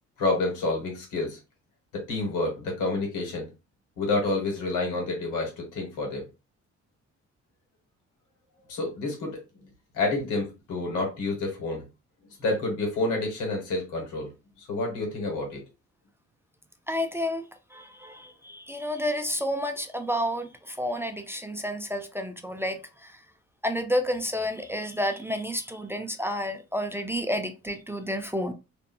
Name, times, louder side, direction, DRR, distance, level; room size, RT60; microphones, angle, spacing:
voice 1, 0.2-1.4 1.9-3.5 4.0-6.3 8.7-9.4 9.9-11.8 12.4-14.3 14.6-15.6, left 2 dB, 90° left, 1.3 m, -29 dB
voice 2, 16.9-23.2 23.6-28.5, equal, 10° right, 0.3 m, -30 dB
2.6 x 2.6 x 2.3 m
cardioid pair, 90°, 30 cm